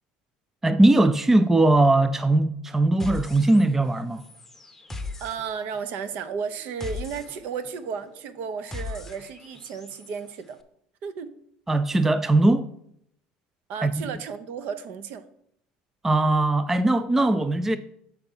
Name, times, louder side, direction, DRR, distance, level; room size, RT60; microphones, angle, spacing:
voice 1, 0.6-4.2 11.7-12.7 13.8-13.9 16.0-17.8, right 2 dB, 10° right, 0.3 m, -20 dB
sound 1, 3.0-3.9 4.2-10.2, left 3 dB, 10° left, 0.7 m, -39 dB
voice 2, 5.2-10.6 11.0-11.4 13.7-15.3, right 6 dB, 60° right, 0.7 m, -33 dB
7.0 x 4.4 x 5.4 m
cardioid pair, 120°, 3 cm